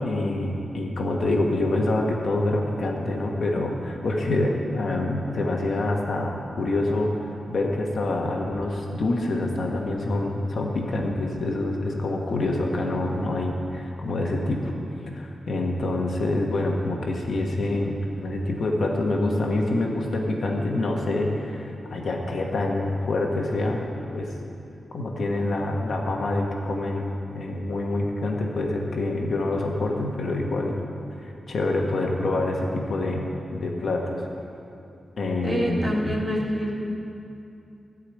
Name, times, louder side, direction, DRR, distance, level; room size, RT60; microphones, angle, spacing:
voice 1, 0.0-14.7 15.1-23.8 24.1-24.3 24.9-30.8 31.5-33.3 33.5-34.2 35.2-36.2, left 2 dB, 60° left, 0 dB, 1.3 m, -26 dB
voice 2, 35.4-36.7, equal, 15° right, -2 dB, 1.8 m, -26 dB
14.0 x 5.0 x 8.2 m, 2.6 s
wide cardioid pair, 120°, 0 cm